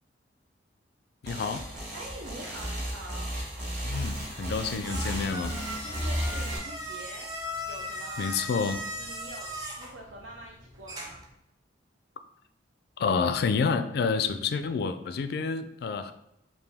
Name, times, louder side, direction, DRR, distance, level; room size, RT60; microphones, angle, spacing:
voice 1, 1.2-1.7 3.8-5.6 8.2-8.8 13.0-16.1, left 5 dB, 55° left, 10 dB, 0.3 m, -29 dB
sound 1, 1.2-6.6, equal, 40° right, 1.2 m, -34 dB
voice 2, 1.9-3.3 5.8-7.3 7.7-8.5 9.0-11.2, right 1 dB, 75° right, -2 dB, 0.6 m, -45 dB
sound 2, 4.2-11.3, equal, 20° right, 0.6 m, -39 dB
5.0 x 2.6 x 3.4 m, 0.86 s
head